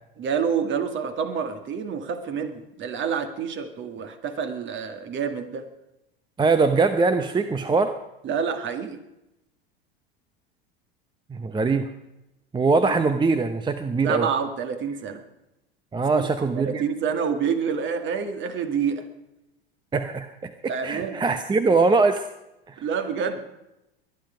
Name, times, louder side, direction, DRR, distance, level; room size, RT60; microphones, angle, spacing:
voice 1, 0.2-5.7 8.2-9.0 12.8-13.0 14.0-15.2 16.1-16.3 16.5-19.1 20.7-21.2 22.8-23.4, right 6 dB, 40° right, 8 dB, 1.9 m, -28 dB
voice 2, 6.4-7.9 11.3-11.9 12.5-14.3 15.9-16.8 19.9-22.3 22.7-22.8, right 4 dB, 15° right, 9 dB, 0.8 m, -22 dB
22.0 x 10.5 x 5.1 m, 0.92 s
hypercardioid pair, 80°, 30 cm